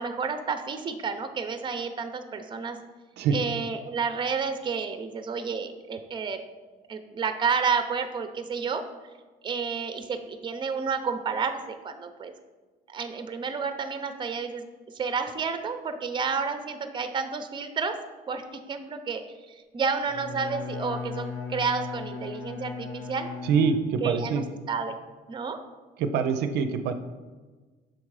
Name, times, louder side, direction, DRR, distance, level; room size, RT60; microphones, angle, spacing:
voice 1, 0.0-2.8 3.3-6.4 6.9-8.8 9.4-12.3 12.9-14.6 14.9-18.0 18.3-23.3 24.0-25.0 25.3-25.6, right 5 dB, 30° right, 8 dB, 0.6 m, -30 dB
Bowed string instrument, 20.0-24.3, left 5 dB, 80° left, 1.9 m, -37 dB
voice 2, 23.4-24.5 26.0-26.9, right 6 dB, 80° right, 8 dB, 0.5 m, -25 dB
6.5 x 3.6 x 4.7 m, 1.3 s
cardioid pair, 110°, 17 cm